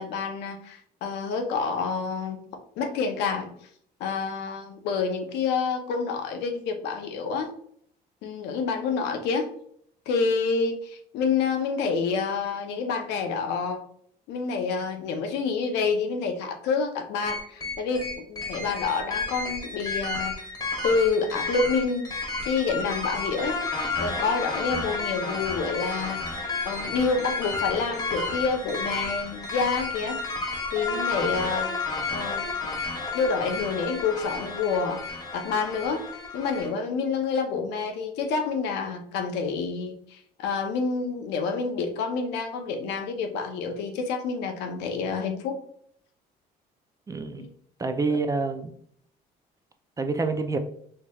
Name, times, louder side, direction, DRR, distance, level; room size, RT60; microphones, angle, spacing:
voice 1, 0.0-2.4 2.8-3.5 4.0-7.5 8.2-9.5 10.1-13.8 14.3-20.3 20.8-22.1 22.4-23.6 24.0-30.2 30.7-31.8 32.1-32.5 33.1-36.1 36.3-45.6 47.4-47.5, left 5 dB, 90° left, 5 dB, 0.7 m, -28 dB
sound 1, 17.3-36.7, left 3 dB, 20° left, 1.0 m, -31 dB
voice 2, 47.1-47.4 47.8-48.7 50.0-50.6, right 3 dB, 20° right, 8 dB, 0.4 m, -27 dB
4.5 x 3.0 x 2.3 m, 0.64 s
cardioid pair, 110°, 17 cm